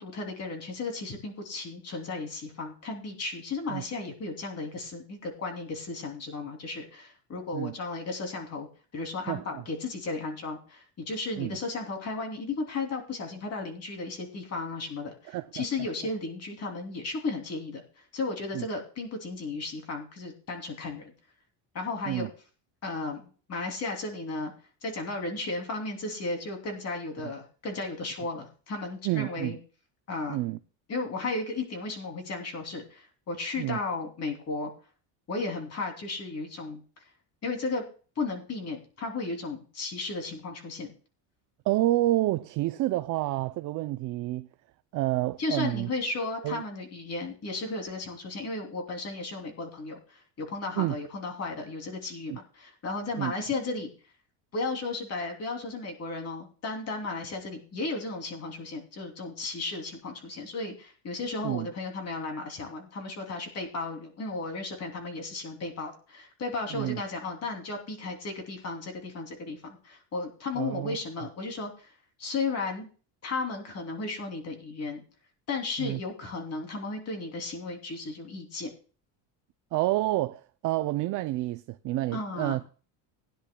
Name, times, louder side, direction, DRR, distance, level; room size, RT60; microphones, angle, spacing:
voice 1, 0.0-8.7 8.9-17.8 18.1-21.1 21.7-22.3 22.8-24.5 24.8-29.6 30.1-30.4 30.9-34.7 35.3-36.8 37.4-37.8 38.2-40.9 45.4-53.9 54.5-71.9 72.2-72.9 73.2-75.0 75.5-78.7 82.1-82.6, left 3 dB, 35° left, 2.9 m, -34 dB
voice 2, 9.3-9.6 11.4-11.6 15.3-15.6 18.5-18.7 22.0-22.3 29.0-29.6 30.3-30.6 33.6-33.8 41.7-44.5 44.9-45.9 46.4-46.6 50.8-51.0 53.2-53.3 61.4-61.7 66.7-67.0 70.5-71.0 75.8-76.0 79.7-82.6, right 17 dB, 45° right, 0.4 m, -29 dB
19.5 x 10.0 x 2.2 m
cardioid pair, 140°, 46 cm